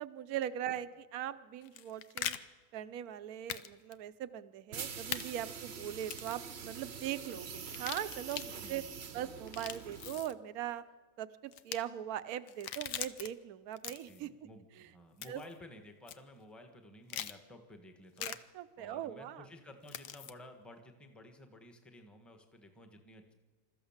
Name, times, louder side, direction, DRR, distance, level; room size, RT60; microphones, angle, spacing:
voice 1, 0.0-2.4 2.7-8.8 9.1-10.8 11.2-14.3 15.3-15.4 18.2-19.5, right 11 dB, 65° right, 13 dB, 1.2 m, -40 dB
sound 1, 1.6-2.4 3.5-3.7 3.9-4.0 5.1-5.2 6.0-6.4 7.6-8.5 9.4-10.3 11.5-11.8 12.5-13.3 13.7-14.2 15.2-15.5 16.1-16.2 17.1-17.4 18.2-18.4 19.9-20.3, left 10 dB, 80° left, 1.4 m, -41 dB
sound 2, 4.7-10.3, right 6 dB, 45° right, 1.1 m, -45 dB
voice 2, 8.5-9.4 13.8-23.3, left 1 dB, ahead, 6 dB, 1.3 m, -54 dB
26.5 x 14.0 x 7.3 m, 1.4 s
omnidirectional pair, 1.8 m